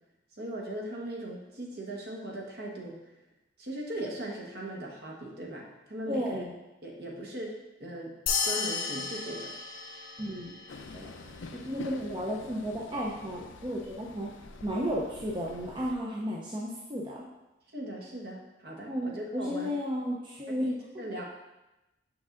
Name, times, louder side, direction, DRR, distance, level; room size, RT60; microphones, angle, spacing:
voice 1, 0.4-3.0 3.6-6.4 6.8-7.5 7.8-8.1 8.4-9.5 17.7-19.7 20.5-21.2, right 1 dB, 55° right, -1 dB, 1.2 m, -39 dB
voice 2, 6.1-6.5 10.2-10.6 10.9-11.1 11.5-14.3 14.6-17.2 18.9-20.7 20.9-21.1, equal, 25° right, -4 dB, 0.6 m, -33 dB
sound 1, 8.3-11.0, left 5 dB, 50° left, 0.8 m, -33 dB
Train, 10.7-15.9, left 3 dB, 85° left, 0.5 m, -47 dB
6.5 x 5.9 x 2.5 m, 0.98 s
head